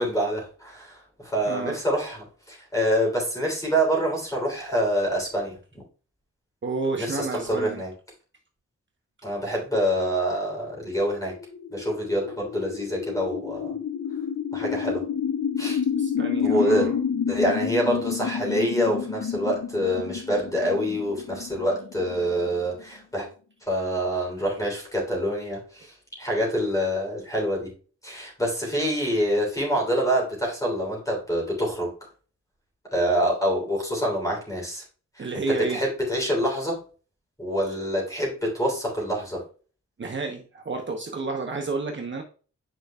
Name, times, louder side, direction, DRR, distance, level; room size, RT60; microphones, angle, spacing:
voice 1, 0.0-5.8 7.0-7.9 9.2-11.3 11.7-13.8 14.5-15.0 15.6-15.8 16.4-16.9 17.3-23.3 23.6-27.7 28.0-31.9 32.9-34.8 35.1-36.8 37.4-39.4, equal, 10° left, -2 dB, 3.3 m, -26 dB
voice 2, 1.5-1.8 6.6-7.8 16.0-17.0 35.2-35.8 40.0-42.2, right 3 dB, 40° right, 2 dB, 0.9 m, -30 dB
sound 1, 10.7-22.8, left 7 dB, 65° left, 0.7 m, -29 dB
8.9 x 5.1 x 2.3 m, 0.38 s
wide cardioid pair, 165°, 29 cm